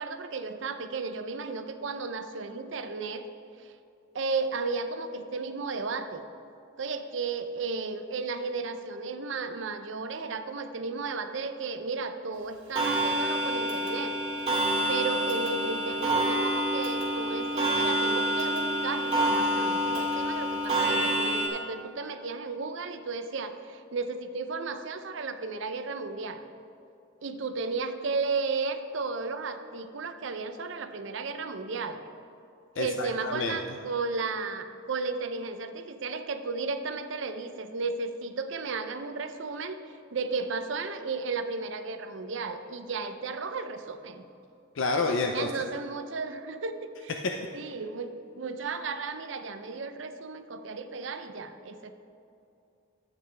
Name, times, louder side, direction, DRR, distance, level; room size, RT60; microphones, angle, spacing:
voice 1, 0.0-3.3 3.6-3.7 4.1-6.2 6.8-14.2 14.9-26.4 27.2-32.0 32.8-39.8 40.1-44.2 45.3-47.2 47.5-51.9, right 4 dB, 65° right, 9 dB, 0.6 m, -34 dB
Clock, 12.8-21.5, right 1 dB, 30° right, 2.1 m, -27 dB
voice 2, 32.8-33.6 44.8-45.5, left 3 dB, 70° left, 3 dB, 0.5 m, -28 dB
12.0 x 8.4 x 3.4 m, 2.5 s
head